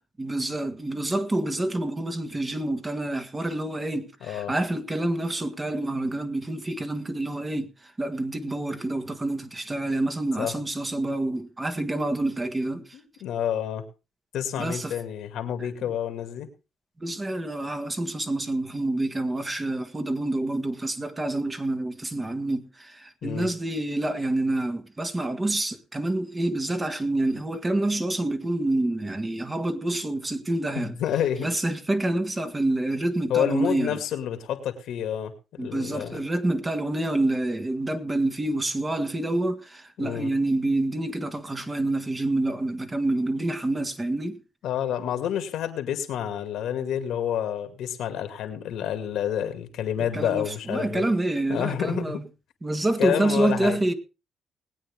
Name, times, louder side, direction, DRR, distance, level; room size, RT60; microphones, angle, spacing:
voice 1, 0.2-13.0 14.6-15.0 17.0-30.9 31.4-34.0 35.6-44.4 50.1-52.2 52.6-53.9, right 2 dB, 20° right, 1.8 m, -27 dB
voice 2, 4.2-4.5 10.4-10.5 12.9-13.8 14.3-16.5 23.2-23.5 30.8-31.5 33.3-36.2 40.0-40.3 44.6-51.0 51.5-52.2 53.0-53.8, left 9 dB, 80° left, 2.2 m, -29 dB
20.0 x 8.8 x 3.6 m
cardioid pair, 90°, 0 cm